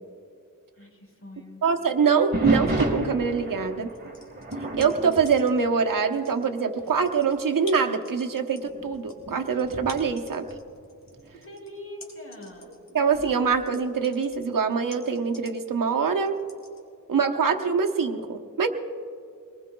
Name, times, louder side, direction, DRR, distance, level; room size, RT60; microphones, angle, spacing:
voice 1, 0.8-1.6 11.3-12.7, left 1 dB, 45° left, -1 dB, 4.5 m, -43 dB
voice 2, 1.6-3.9 4.7-10.4 12.9-16.4 17.1-18.7, right 5 dB, 80° right, 5 dB, 0.9 m, -24 dB
sound 1, 2.3-6.5 6.8-7.1 7.8-7.9 8.6-11.3 13.1-13.7, right 1 dB, 30° right, 1.8 m, -31 dB
sound 2, 3.8-5.7 6.0-16.8, left 2 dB, 85° left, 2.4 m, -49 dB
24.0 x 20.0 x 2.3 m, 2.4 s
wide cardioid pair, 85°, 33 cm